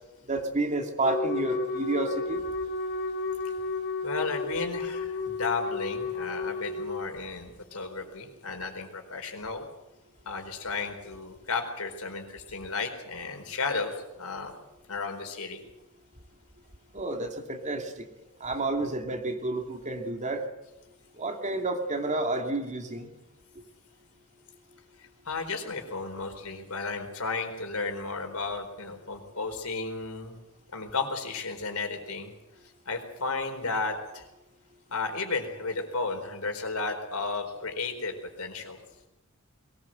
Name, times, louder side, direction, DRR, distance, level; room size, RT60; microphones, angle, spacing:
voice 1, 0.3-2.4 16.9-18.1 18.4-20.4 21.2-23.1, right 2 dB, 35° right, 4 dB, 2.6 m, -30 dB
Wind instrument woodwind instrument, 1.0-7.1, left 3 dB, 50° left, 1.9 m, -32 dB
voice 2, 4.0-9.6 10.2-14.5 14.9-15.6 25.0-30.4 30.7-32.3 32.9-34.3 34.9-38.8, left 4 dB, 80° left, 5 dB, 4.4 m, -33 dB
22.5 x 19.5 x 7.8 m, 0.96 s
head